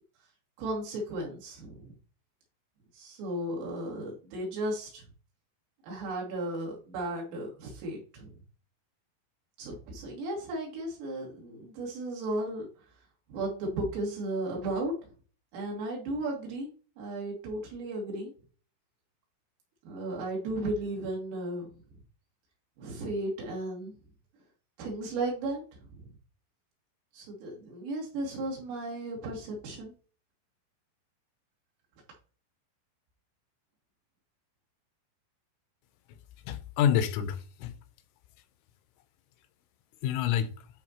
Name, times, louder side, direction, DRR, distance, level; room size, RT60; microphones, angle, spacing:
voice 1, 0.6-1.9 2.9-5.0 5.8-8.3 9.6-12.7 13.3-15.0 15.5-16.7 17.0-18.3 19.9-21.7 22.8-23.9 24.8-25.6 26.0-26.1 27.1-29.9, right 1 dB, 75° right, 5.2 m, -35 dB
voice 2, 36.4-37.7 40.0-40.7, left 9 dB, 80° left, 3.3 m, -28 dB
12.5 x 4.6 x 3.0 m
omnidirectional pair, 5.9 m